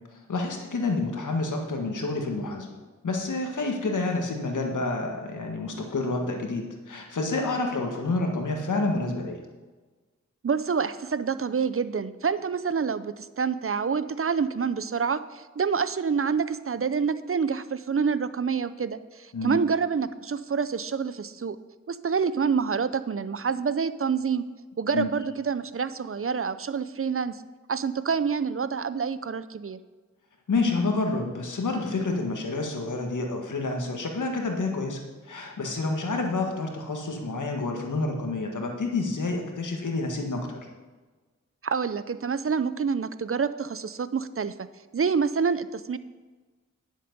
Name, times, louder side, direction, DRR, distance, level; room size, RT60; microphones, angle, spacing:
voice 1, 0.3-2.7 3.0-9.4 19.3-19.6 24.9-25.1 30.5-40.7, left 3 dB, 85° left, 2 dB, 1.7 m, -28 dB
voice 2, 10.4-21.6 21.9-24.4 24.8-27.4 27.7-29.8 41.6-44.7 44.9-46.0, right 6 dB, 45° right, 14 dB, 0.6 m, -27 dB
10.5 x 7.4 x 5.4 m, 1.3 s
cardioid pair, 45°, 30 cm